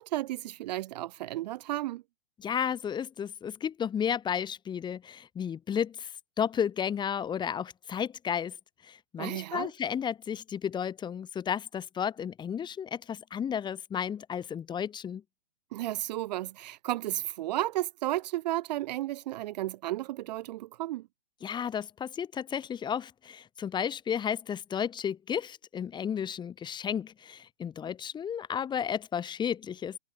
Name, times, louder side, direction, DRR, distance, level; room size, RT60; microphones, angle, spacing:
voice 1, 0.0-2.0 9.2-9.7 15.7-21.1, right 15 dB, 35° right, 1.6 m, -33 dB
voice 2, 2.4-8.6 8.8-15.2 21.4-30.0, left 8 dB, 10° left, 3.2 m, -33 dB
figure-of-eight pair, 125°, 37 cm